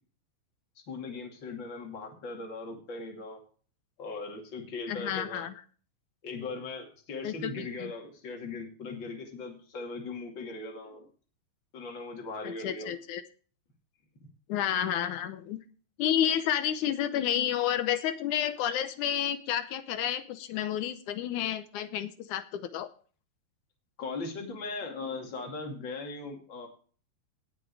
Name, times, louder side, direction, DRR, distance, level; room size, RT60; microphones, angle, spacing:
voice 1, 0.9-3.4 4.0-5.5 6.2-11.1 11.7-12.9 24.0-26.7, left 3 dB, 35° left, 2 dB, 2.8 m, -39 dB
voice 2, 4.9-5.5 7.2-7.9 12.4-13.2 14.5-15.6 16.0-22.9, left 10 dB, 75° left, 11 dB, 2.0 m, -30 dB
18.5 x 6.3 x 4.8 m, 0.41 s
omnidirectional pair, 4.1 m